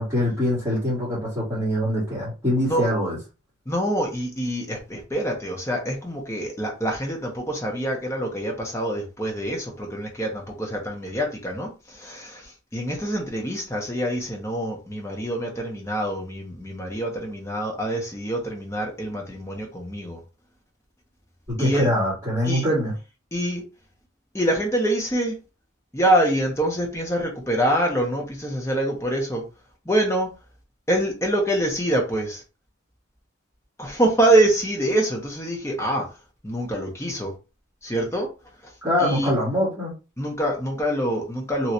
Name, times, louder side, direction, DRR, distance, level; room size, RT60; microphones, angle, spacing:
voice 1, 0.0-3.2 21.6-22.9 38.8-39.9, left 1 dB, 15° right, 1.9 m, -23 dB
voice 2, 3.7-20.2 21.6-21.9 22.4-22.7 23.3-23.6 24.3-25.4 25.9-29.4 29.8-30.3 30.9-32.4 33.8-36.1 36.4-37.3 37.8-38.3 38.6-38.7 39.0-39.3 40.2-41.7, right 1 dB, 15° left, 0.8 m, -25 dB
3.1 x 3.0 x 2.7 m
head